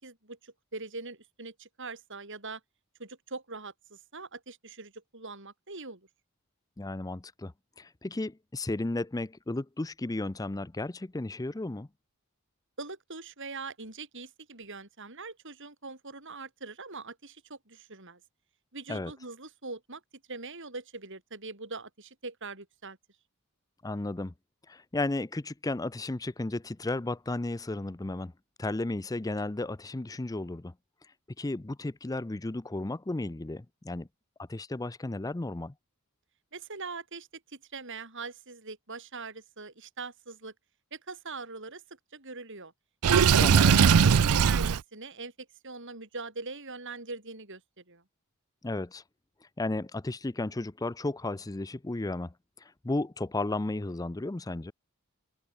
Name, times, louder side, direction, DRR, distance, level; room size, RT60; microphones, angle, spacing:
voice 1, 0.0-2.6 3.0-6.1 12.8-18.2 18.7-20.0 20.3-23.0 36.5-40.5 40.9-41.8 42.1-42.7 43.1-47.6 47.9-48.0, right 3 dB, 55° right, 7.4 m, -42 dB
voice 2, 6.8-7.5 7.8-11.9 18.9-19.1 23.8-24.3 24.7-28.3 28.6-30.7 31.4-34.1 34.5-35.7 43.4-43.9 48.6-49.0 49.6-52.3 52.6-54.7, left 2 dB, 15° left, 0.5 m, -34 dB
Water / Sink (filling or washing), 43.0-44.8, right 7 dB, 80° right, 0.5 m, -20 dB
head